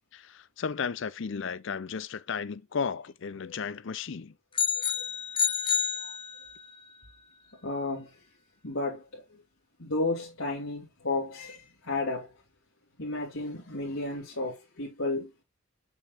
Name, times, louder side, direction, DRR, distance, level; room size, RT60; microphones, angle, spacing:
voice 1, 0.1-4.3, left 6 dB, 60° left, 0.5 m, -34 dB
sound 1, 4.5-6.7, left 6 dB, 25° left, 0.7 m, -29 dB
voice 2, 4.7-5.0 5.7-6.1 7.5-8.3 8.6-9.4 9.8-12.4 13.0-15.3, left 2 dB, 80° left, 2.7 m, -33 dB
7.0 x 6.5 x 2.5 m
head